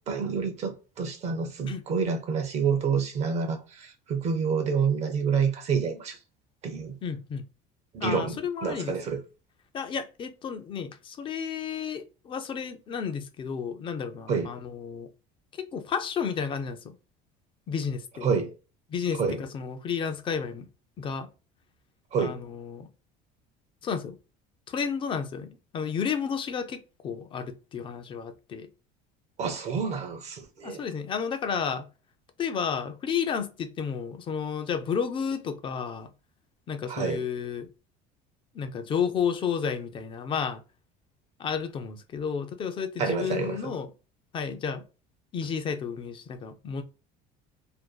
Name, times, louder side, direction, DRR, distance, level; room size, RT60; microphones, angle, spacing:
voice 1, 0.0-6.2 6.6-7.0 7.9-9.2 14.3-14.5 18.2-18.5 19.2-19.4 22.1-22.4 29.4-30.8 36.9-37.2 43.0-43.7, right 6 dB, 35° right, 0.5 m, -28 dB
voice 2, 7.0-7.4 8.0-8.9 9.7-15.1 15.6-17.0 17.7-18.3 18.9-20.7 21.0-21.3 22.2-22.9 23.8-24.2 24.7-28.7 30.6-31.9 32.4-36.1 36.7-37.7 38.5-40.6 41.4-43.9 44.3-44.8 45.3-46.8, left 6 dB, 30° left, 0.3 m, -32 dB
2.5 x 2.2 x 2.2 m
cardioid pair, 140°, 18 cm